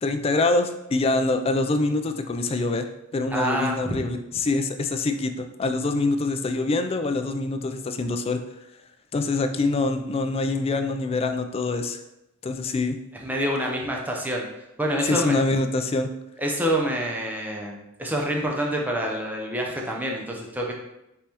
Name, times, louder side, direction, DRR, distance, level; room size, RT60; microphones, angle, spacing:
voice 1, 0.0-2.9 3.1-8.4 9.1-12.0 12.4-13.0 15.0-16.1, left 3 dB, 30° left, 7 dB, 0.3 m, -25 dB
voice 2, 3.3-4.0 13.2-14.5 14.8-15.3 16.4-20.7, equal, 10° right, -1 dB, 0.6 m, -27 dB
5.4 x 3.2 x 2.9 m, 0.90 s
head